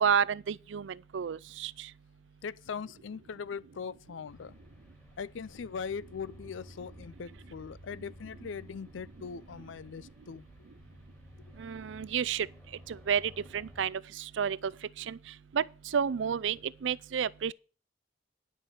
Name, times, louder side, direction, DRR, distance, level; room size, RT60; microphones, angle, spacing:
voice 1, 0.0-1.9 11.6-12.5 12.9-14.6 15.0-15.2 15.5-15.6 15.9-17.5, right 7 dB, 75° right, 0.4 m, -30 dB
voice 2, 2.4-4.6 5.2-10.4 11.4-11.5, left 6 dB, 85° left, 0.5 m, -40 dB
sound 1, 4.3-13.9, left 1 dB, 15° left, 2.1 m, -54 dB
10.0 x 6.3 x 6.4 m
head